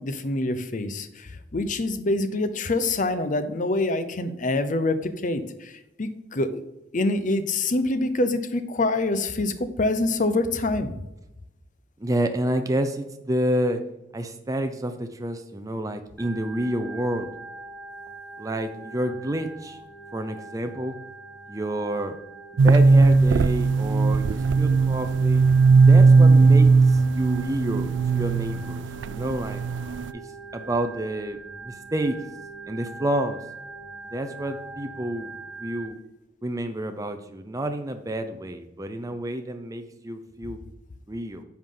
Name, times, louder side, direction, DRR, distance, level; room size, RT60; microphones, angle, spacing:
voice 1, 0.0-6.6 6.9-10.9, left 2 dB, 45° left, 11 dB, 0.7 m, -26 dB
voice 2, 12.0-13.8 14.1-17.3 18.4-19.8 20.1-21.0 21.5-22.2 22.6-25.4 25.9-29.6 30.1-30.2 30.5-32.2 32.7-33.4 34.1-35.3 35.6-36.0 36.4-40.6 41.1-41.4, right 1 dB, 20° right, 7 dB, 0.6 m, -29 dB
Organ, 16.2-35.9, right 3 dB, ahead, 1.2 m, -43 dB
sound 1, 22.6-30.1, right 4 dB, 75° right, 0.4 m, -18 dB
10.0 x 5.9 x 3.8 m, 0.92 s
head